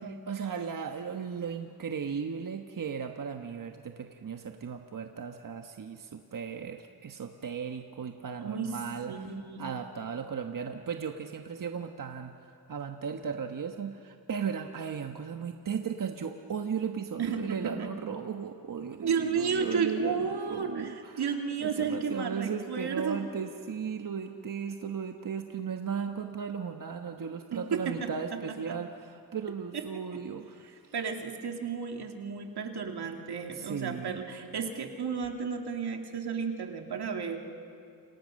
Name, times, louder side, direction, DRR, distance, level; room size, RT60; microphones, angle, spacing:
voice 1, 0.1-9.3 9.6-30.9 33.5-34.2, right 6 dB, 55° right, 5 dB, 1.3 m, -36 dB
voice 2, 8.4-8.7 9.1-9.7 17.2-17.9 19.0-23.2 27.5-28.4 28.7-28.8 29.7-29.8 30.1-30.2 30.9-37.4, right 6 dB, 85° right, 3 dB, 2.6 m, -33 dB
29.0 x 27.5 x 6.5 m, 2.5 s
wide cardioid pair, 105°, 38 cm